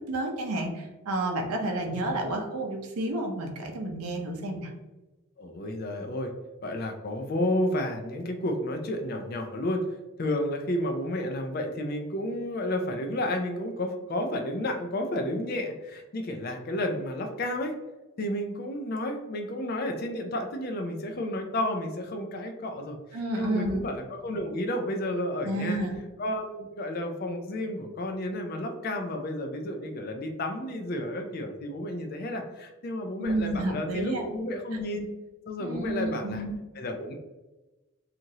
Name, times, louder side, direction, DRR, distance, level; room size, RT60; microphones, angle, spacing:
voice 1, 0.1-4.7 23.1-23.8 25.4-26.0 33.2-34.3 35.6-36.6, right 1 dB, 90° right, 2 dB, 0.6 m, -30 dB
voice 2, 1.9-2.3 5.4-6.3 6.6-9.8 10.2-17.7 18.2-25.8 26.2-35.1 35.5-36.4 36.8-37.1, left 1 dB, 45° left, 4 dB, 0.3 m, -31 dB
3.0 x 2.4 x 2.7 m, 1.1 s
head